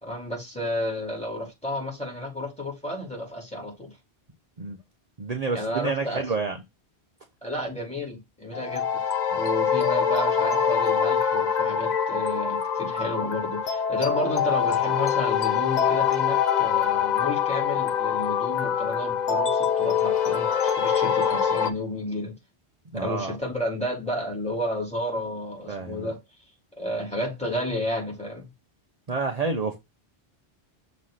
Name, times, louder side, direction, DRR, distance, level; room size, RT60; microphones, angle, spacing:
voice 1, 0.0-3.9 5.5-6.2 7.4-9.0 9.3-22.4 22.9-26.2 26.8-28.5, left 1 dB, 5° left, 2.9 m, -31 dB
voice 2, 5.2-6.6 9.3-9.4 22.9-23.4 25.7-26.1 29.1-29.8, right 4 dB, 40° right, 0.9 m, -29 dB
sound 1, 8.5-21.7, left 7 dB, 50° left, 0.9 m, -24 dB
6.4 x 3.1 x 5.7 m
omnidirectional pair, 1.0 m